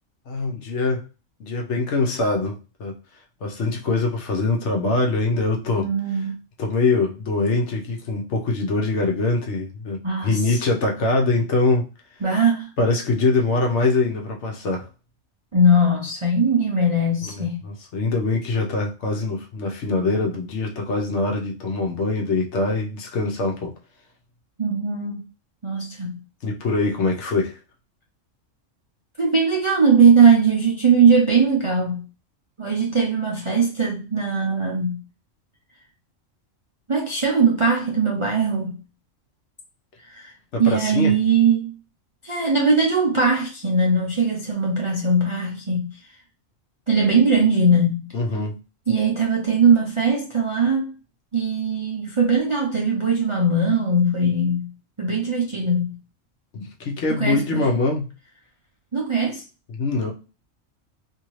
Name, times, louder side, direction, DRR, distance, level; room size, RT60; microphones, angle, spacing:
voice 1, 0.3-1.0 1.4-2.9 3.4-5.9 6.6-11.8 12.8-14.9 17.2-23.7 26.4-27.6 40.5-41.2 48.1-48.6 56.5-58.1 59.7-60.1, left 3 dB, 65° left, 1.0 m, -23 dB
voice 2, 5.8-6.4 10.0-10.6 12.2-12.7 15.5-17.6 24.6-25.2 25.6-26.2 29.2-32.1 32.6-35.0 36.9-38.8 40.1-40.3 40.6-41.7 42.2-45.9 46.9-48.1 48.9-51.0 51.3-54.7 55.0-56.0 57.1-57.7 58.9-59.4, right 3 dB, 45° right, 0.4 m, -20 dB
2.7 x 2.6 x 3.0 m
omnidirectional pair, 1.3 m